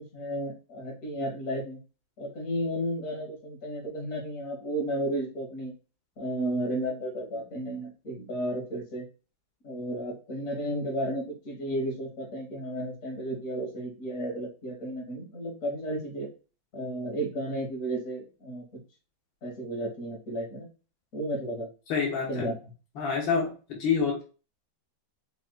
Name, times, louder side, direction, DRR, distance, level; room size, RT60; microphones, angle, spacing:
voice 1, 0.0-1.8 2.2-5.7 6.2-9.0 9.6-16.3 16.7-18.6 19.4-20.7 21.1-21.7 22.3-22.6, right 1 dB, 45° left, -1 dB, 1.7 m, -33 dB
voice 2, 21.9-22.5 23.0-24.2, left 6 dB, 80° left, -1 dB, 1.7 m, -27 dB
5.1 x 3.1 x 2.3 m, 0.34 s
omnidirectional pair, 2.1 m